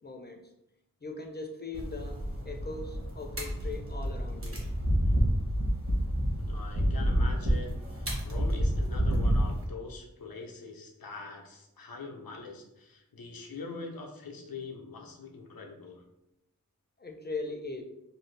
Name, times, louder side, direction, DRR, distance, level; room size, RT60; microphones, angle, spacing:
voice 1, 0.0-0.4 1.0-2.2 2.4-4.6 17.0-17.8, left 3 dB, 30° left, 3 dB, 0.4 m, -39 dB
sound 1, 1.7-9.6, equal, 40° right, 0.9 m, -29 dB
voice 2, 6.4-16.0, left 3 dB, 85° left, 1 dB, 0.6 m, -43 dB
2.6 x 2.3 x 3.2 m, 0.86 s
wide cardioid pair, 50°, 34 cm